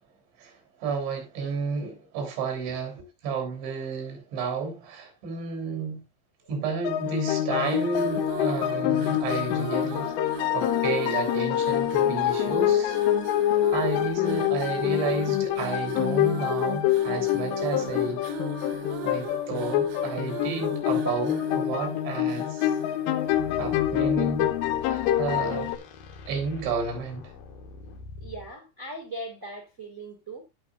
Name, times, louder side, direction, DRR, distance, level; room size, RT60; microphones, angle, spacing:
voice 1, 0.8-6.0 6.5-10.1 10.5-13.0 13.4-18.2 19.0-22.7 23.6-24.5 24.8-25.7 26.3-27.3, right 5 dB, 80° right, 5.9 m, -31 dB
sound 1, 6.8-25.8, left 12 dB, 85° left, 2.9 m, -26 dB
sound 2, 7.5-24.0, right 8 dB, 60° right, 2.1 m, -39 dB
sound 3, 23.3-28.5, left 3 dB, 65° left, 2.7 m, -44 dB
voice 2, 28.2-30.4, right 1 dB, 30° right, 1.2 m, -39 dB
17.0 x 6.1 x 2.4 m
omnidirectional pair, 5.2 m